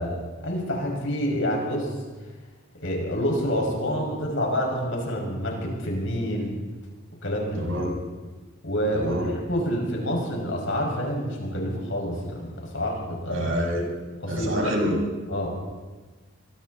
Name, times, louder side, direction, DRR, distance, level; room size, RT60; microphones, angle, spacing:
voice 1, 0.0-1.9 2.8-6.6 7.2-7.7 8.6-13.5 14.2-14.5 15.3-15.5, equal, 60° left, 0 dB, 6.6 m, -28 dB
voice 2, 7.5-7.9 8.9-9.3 13.3-13.9 14.3-15.0, equal, 65° right, 0 dB, 6.1 m, -27 dB
26.5 x 23.5 x 4.3 m, 1.3 s
head